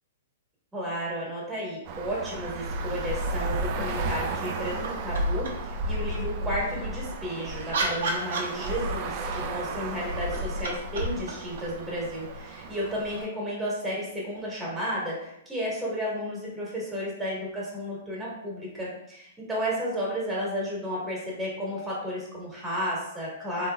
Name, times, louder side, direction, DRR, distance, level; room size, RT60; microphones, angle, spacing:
voice 1, 0.7-23.7, equal, 10° right, -6 dB, 1.5 m, -32 dB
Traffic noise roadway noise, 1.9-13.3, right 1 dB, 40° right, 0.4 m, -33 dB
sound 1, 4.8-5.8 7.2-9.1 10.1-12.7 14.8-14.9, right 2 dB, 70° right, 0.7 m, -34 dB
3.7 x 2.9 x 2.3 m, 0.79 s
hypercardioid pair, 120°, 0 cm